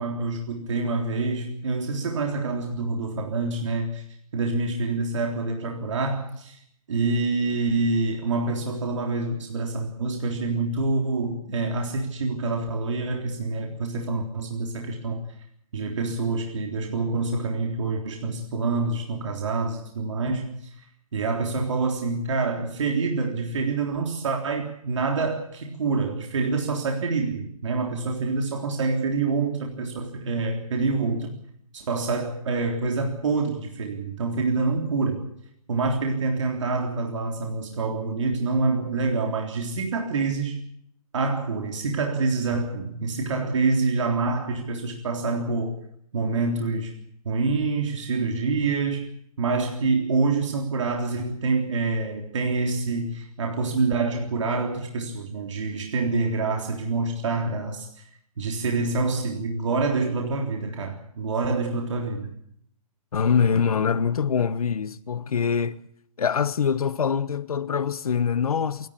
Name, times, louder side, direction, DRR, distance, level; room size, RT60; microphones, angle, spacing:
voice 1, 0.0-4.0 4.3-6.6 6.9-15.2 15.7-20.7 21.1-31.4 31.7-35.3 35.7-40.6 41.1-45.7 46.1-47.0 47.2-49.1 49.4-57.9 58.4-62.3, right 3 dB, 55° right, 3.6 m, -26 dB
voice 2, 63.1-65.8 66.2-68.9, left 6 dB, 75° left, 1.2 m, -24 dB
28.5 x 11.5 x 8.7 m
hypercardioid pair, 180°, 19 cm